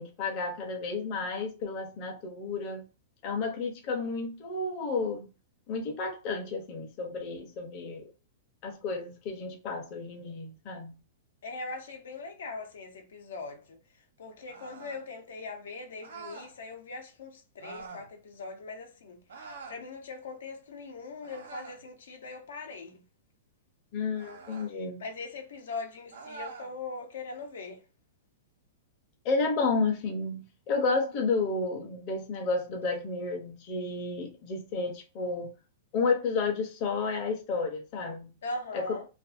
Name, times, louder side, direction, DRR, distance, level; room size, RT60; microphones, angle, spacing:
voice 1, 0.0-2.8 3.2-5.3 5.7-8.0 8.6-10.9 23.9-25.0 29.2-35.5 35.9-38.3 38.7-38.9, left 4 dB, 30° left, 0.7 m, -31 dB
voice 2, 11.4-13.8 14.2-19.2 19.7-23.0 25.0-27.8 38.4-39.1, left 3 dB, 85° left, 0.8 m, -40 dB
sound 1, 14.5-15.0 16.0-16.5 17.6-18.1 19.3-19.8 21.2-21.9 24.1-24.7 26.1-26.7, right 4 dB, 85° right, 0.9 m, -45 dB
2.5 x 2.4 x 2.5 m
supercardioid pair, 170°, 0 cm